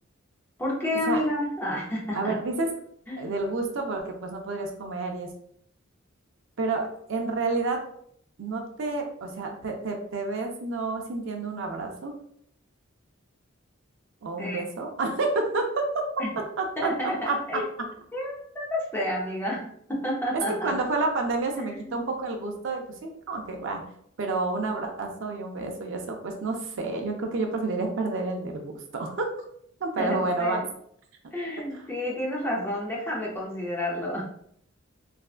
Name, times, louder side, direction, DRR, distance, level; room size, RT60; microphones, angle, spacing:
voice 1, 0.6-2.4 3.1-3.4 14.4-14.6 16.2-16.3 16.8-17.7 18.1-20.7 21.6-22.1 30.0-30.6 31.3-34.2, left 1 dB, 10° left, -4 dB, 0.7 m, -30 dB
voice 2, 2.1-2.7 3.2-5.3 6.6-7.8 8.4-12.1 14.2-15.7 16.6-16.9 17.2-17.4 20.5-23.8 24.2-29.3 29.8-30.6 31.7-31.8, right 3 dB, 65° right, 3 dB, 0.5 m, -29 dB
3.3 x 2.3 x 2.4 m, 0.67 s
head